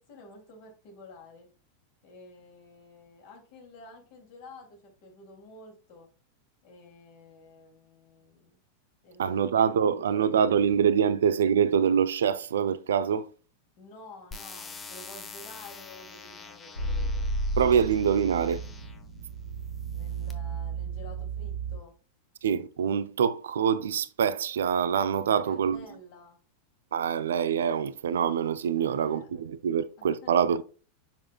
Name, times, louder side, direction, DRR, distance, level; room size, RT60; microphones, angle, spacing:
voice 1, 0.1-1.5 2.0-6.1 6.6-8.6 9.0-11.1 13.8-17.3 19.9-21.9 25.2-26.4 28.7-29.3 30.0-30.3, left 2 dB, 45° left, 2.8 m, -50 dB
voice 2, 9.2-13.3 17.6-18.6 22.4-25.8 26.9-30.6, right 7 dB, 65° right, 0.5 m, -25 dB
sound 1, 14.3-19.1 19.8-20.3, left 4 dB, 20° left, 1.1 m, -46 dB
sound 2, 16.7-21.8, right 3 dB, 80° left, 3.2 m, -33 dB
7.1 x 5.8 x 2.4 m
figure-of-eight pair, 90°, 0 cm